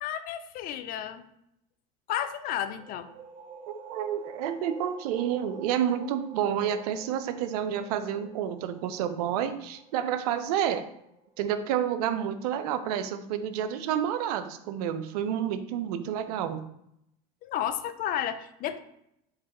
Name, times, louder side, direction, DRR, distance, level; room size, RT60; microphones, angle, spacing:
voice 1, 0.0-1.2 2.1-3.1 17.4-18.8, left 10 dB, 45° left, 11 dB, 0.4 m, -32 dB
sound 1, 2.7-12.1, right 4 dB, 30° right, 1.2 m, -48 dB
voice 2, 3.7-10.9 11.4-16.6, right 9 dB, 75° right, 11 dB, 0.4 m, -29 dB
4.7 x 2.9 x 3.0 m, 0.78 s
hypercardioid pair, 95°, 20 cm